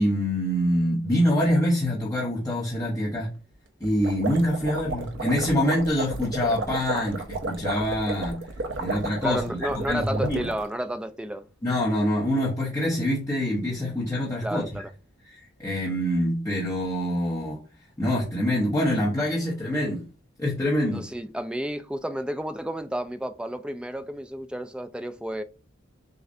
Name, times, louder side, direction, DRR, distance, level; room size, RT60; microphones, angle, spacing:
voice 1, 0.0-3.3 3.8-8.5 8.8-9.4 9.9-10.4 11.6-14.6 15.3-17.6 18.0-20.0 20.4-21.0, equal, 15° left, 1.0 m, -25 dB
sound 1, 3.8-10.7, right 3 dB, 65° right, 0.7 m, -33 dB
voice 2, 9.2-11.5 14.4-14.9 20.9-25.4, right 1 dB, 5° right, 0.3 m, -31 dB
6.4 x 2.4 x 2.6 m
head